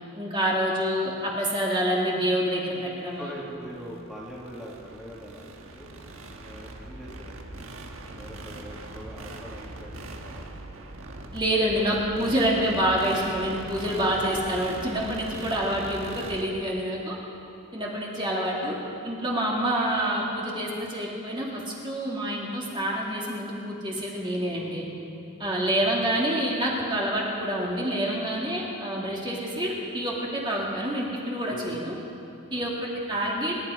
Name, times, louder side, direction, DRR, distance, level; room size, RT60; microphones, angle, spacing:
voice 1, 0.2-3.3 11.3-17.2 17.7-18.8 19.0-24.8 25.4-31.9 32.5-32.7 33.1-33.5, equal, 25° right, -4 dB, 2.4 m, -27 dB
voice 2, 2.7-5.9 6.4-7.5 7.8-10.5 10.8-11.0 11.6-12.4 14.0-14.4 24.5-25.0 25.4-25.7 31.5-31.8 32.5-32.6, equal, ahead, -6 dB, 2.2 m, -43 dB
sound 1, 3.1-16.4, right 2 dB, 80° right, 1.4 m, -41 dB
26.5 x 11.0 x 5.0 m, 2.7 s
head